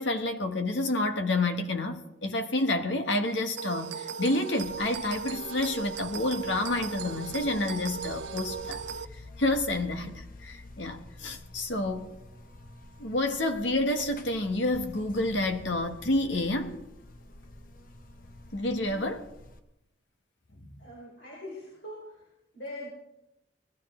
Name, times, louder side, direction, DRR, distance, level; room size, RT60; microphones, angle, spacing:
voice 1, 0.0-8.8 9.4-12.1 13.0-16.8 18.5-19.2, left 2 dB, 80° left, 1.4 m, -29 dB
sound 1, 3.6-9.0, right 6 dB, 75° right, 0.6 m, -37 dB
Buzz, 4.6-19.6, left 2 dB, 50° left, 1.0 m, -49 dB
voice 2, 20.8-22.3 22.5-22.9, left 1 dB, 65° left, 4.5 m, -42 dB
19.5 x 14.5 x 3.8 m
head